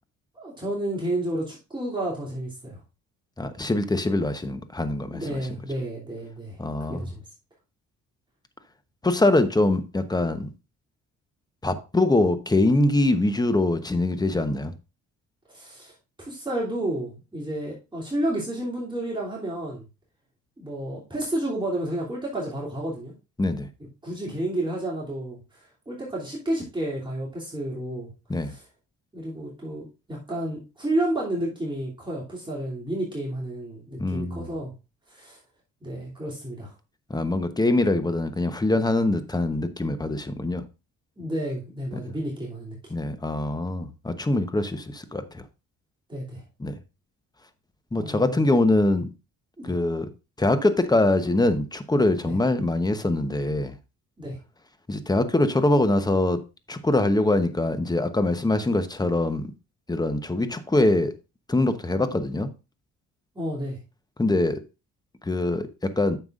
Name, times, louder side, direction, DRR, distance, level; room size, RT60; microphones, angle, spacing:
voice 1, 0.3-2.8 5.1-6.6 6.9-7.2 15.5-15.9 16.2-19.8 20.6-23.1 24.0-28.1 28.4-28.6 29.1-34.7 35.1-35.4 35.8-36.7 41.2-42.8 46.1-46.4 48.0-48.4 49.6-49.7 52.3-52.4 54.2-54.4 63.3-63.8, right 1 dB, 15° right, 2.9 m, -31 dB
voice 2, 3.4-5.4 6.6-7.1 9.0-10.5 11.6-14.7 23.4-23.7 28.3-28.5 34.0-34.5 37.1-40.6 42.9-45.4 46.6-46.7 47.9-49.1 49.6-50.1 50.4-53.7 54.9-56.4 56.7-59.5 59.9-61.1 61.5-62.5 64.2-64.6 65.2-66.2, left 2 dB, 15° left, 0.9 m, -23 dB
9.5 x 6.9 x 2.5 m
cardioid pair, 90°, 30 cm